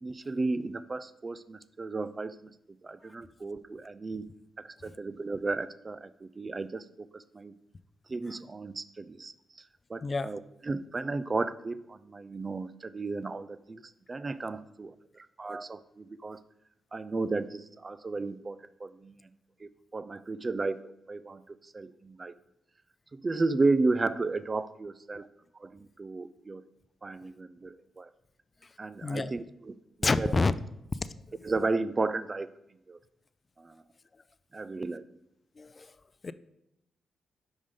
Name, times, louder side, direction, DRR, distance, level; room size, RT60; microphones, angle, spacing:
voice 1, 0.0-2.5 2.8-4.3 4.6-7.5 8.1-9.3 9.9-13.8 14.1-16.4 16.9-19.2 19.6-20.8 21.1-22.4 23.1-25.3 25.6-26.6 27.0-28.1 28.8-30.3 31.4-32.5 32.9-33.0 33.6-33.8 34.5-35.0, right 3 dB, 35° right, 14 dB, 0.4 m, -33 dB
voice 2, 10.0-10.3 25.1-25.3 29.0-29.3 30.0-30.5 31.3-31.4 35.6-35.9 36.2-36.3, left 3 dB, 40° left, 15 dB, 0.3 m, -28 dB
5.2 x 5.2 x 3.6 m, 0.84 s
supercardioid pair, 55°, 0 cm